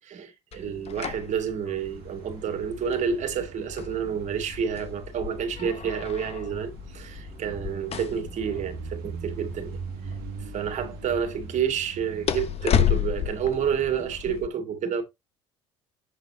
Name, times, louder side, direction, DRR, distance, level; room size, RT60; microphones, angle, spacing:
voice 1, 0.0-10.1 10.4-15.0, right 7 dB, 50° right, 2.2 m, -29 dB
sound 1, 0.5-14.5, left 9 dB, 40° left, 0.8 m, -33 dB
sound 2, 1.8-14.4, right 7 dB, 65° right, 1.4 m, -42 dB
8.0 x 4.1 x 4.0 m
hypercardioid pair, 65°, 16 cm